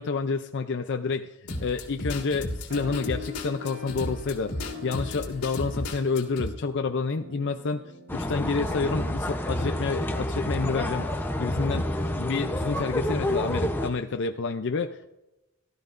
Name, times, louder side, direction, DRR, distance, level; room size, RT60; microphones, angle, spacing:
voice 1, 0.0-1.3 1.6-11.1 11.4-15.1, left 4 dB, 55° left, 6 dB, 0.5 m, -29 dB
sound 1, 1.5-6.5, left 1 dB, 80° left, 1.9 m, -34 dB
sound 2, 2.7-9.6, left 5 dB, 55° right, 1.4 m, -44 dB
sound 3, 8.1-13.9, left 1 dB, 10° left, 0.8 m, -29 dB
16.5 x 12.5 x 2.6 m, 0.93 s
head